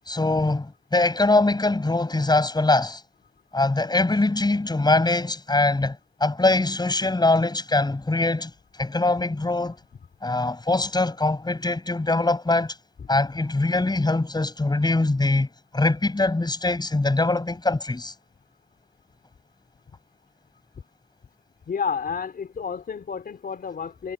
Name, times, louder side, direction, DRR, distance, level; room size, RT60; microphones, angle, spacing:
voice 1, 0.1-3.0 3.5-8.5 8.8-9.8 10.2-12.7 13.1-15.5 15.7-18.1, left 2 dB, 25° left, 7.4 m, -22 dB
voice 2, 21.7-24.1, left 6 dB, 65° left, 3.3 m, -30 dB
cardioid pair, 60°, 17 cm